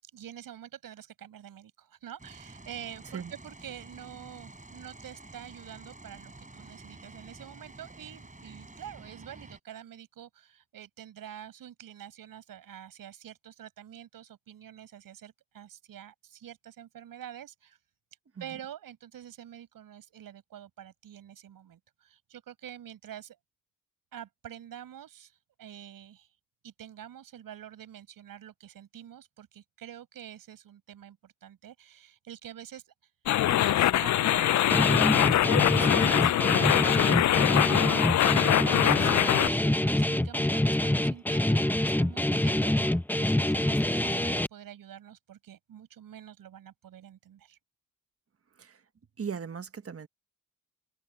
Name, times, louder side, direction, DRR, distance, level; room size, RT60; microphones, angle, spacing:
voice 1, 0.0-17.8 18.4-23.4 24.1-26.3 26.6-33.1 33.5-35.1 35.7-47.6, right 10 dB, 85° right, 6.1 m, -47 dB
sound 1, 2.2-9.6, right 2 dB, 20° right, 5.7 m, -49 dB
sound 2, 33.3-39.5, left 13 dB, 60° left, 0.5 m, -24 dB
Guitar, 34.7-44.5, left 1 dB, 5° left, 0.9 m, -26 dB
voice 2, 48.5-48.8 49.2-50.1, right 6 dB, 45° right, 1.4 m, -38 dB
open air
cardioid pair, 60°, 33 cm